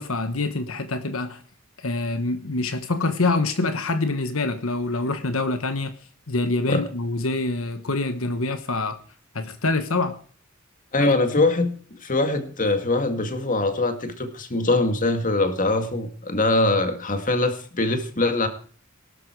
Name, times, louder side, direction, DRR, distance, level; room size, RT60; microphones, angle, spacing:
voice 1, 0.0-1.4 1.8-5.9 6.3-9.0 9.3-10.2 11.0-11.1, left 3 dB, 80° left, 1.2 m, -25 dB
voice 2, 10.9-18.5, left 2 dB, 40° left, 2.1 m, -23 dB
18.0 x 12.5 x 4.7 m
head